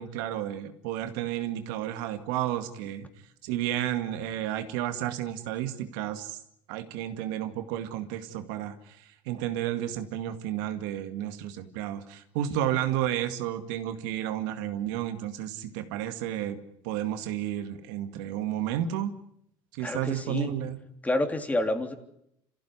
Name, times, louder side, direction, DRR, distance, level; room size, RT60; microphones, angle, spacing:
voice 1, 0.0-3.1 3.4-6.4 6.7-16.6 16.8-19.1 19.7-20.8, right 11 dB, 85° right, 8 dB, 2.2 m, -32 dB
voice 2, 19.8-20.5 21.0-21.9, left 1 dB, 15° left, 6 dB, 3.4 m, -28 dB
27.5 x 15.5 x 9.7 m, 0.75 s
supercardioid pair, 100°, 11 cm